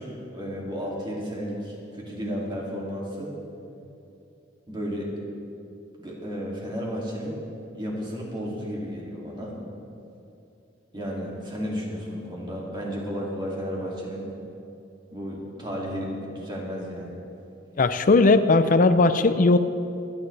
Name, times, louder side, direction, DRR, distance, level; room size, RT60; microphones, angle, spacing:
voice 1, 0.0-3.3 4.7-5.1 6.0-7.4 7.7-9.6 10.9-14.3 15.1-17.2, equal, 25° right, -3 dB, 2.5 m, -33 dB
voice 2, 17.8-19.6, left 3 dB, 45° left, 11 dB, 0.5 m, -18 dB
26.5 x 9.8 x 3.3 m, 2.7 s
head